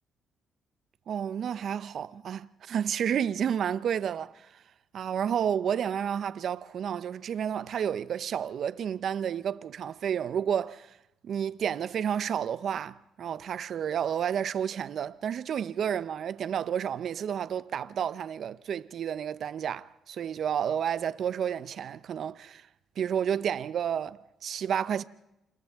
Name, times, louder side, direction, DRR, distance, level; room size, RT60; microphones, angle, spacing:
voice 1, 1.1-4.6 4.9-11.0 11.2-22.7 23.0-25.0, right 8 dB, 60° right, 0.7 m, -31 dB
28.5 x 28.0 x 3.6 m
cardioid pair, 90°, 0 cm